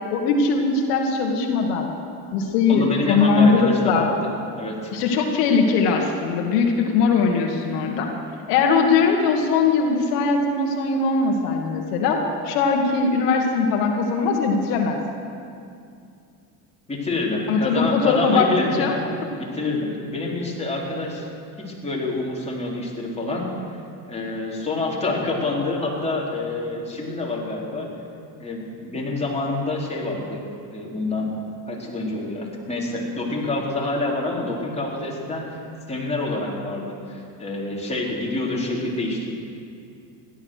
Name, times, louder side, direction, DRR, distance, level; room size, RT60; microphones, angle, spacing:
voice 1, 0.1-1.9 2.3-4.1 4.9-8.1 8.5-15.0 17.5-18.5 18.8-18.9, left 4 dB, 85° left, 2 dB, 1.7 m, -20 dB
voice 2, 2.7-4.9 16.9-18.9 19.4-21.3 21.6-23.5 24.0-27.9 28.4-30.4 30.7-31.3 31.7-35.6 35.9-39.3, left 2 dB, 15° left, -4 dB, 4.0 m, -27 dB
16.5 x 11.5 x 6.4 m, 2.5 s
supercardioid pair, 90°, 46 cm